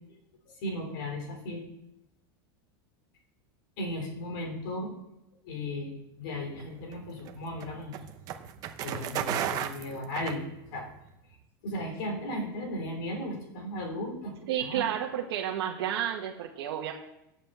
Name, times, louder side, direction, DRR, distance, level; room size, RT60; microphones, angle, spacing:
voice 1, 0.5-1.7 3.8-4.9 5.4-8.0 8.8-10.4 10.7-10.9 11.6-14.9, left 1 dB, 55° left, 2 dB, 3.6 m, -36 dB
sound 1, 6.5-11.0, right 10 dB, 30° right, 0.7 m, -35 dB
voice 2, 14.5-16.9, right 10 dB, 75° right, -2 dB, 1.3 m, -31 dB
7.9 x 7.1 x 6.6 m, 0.84 s
supercardioid pair, 175°, 13 cm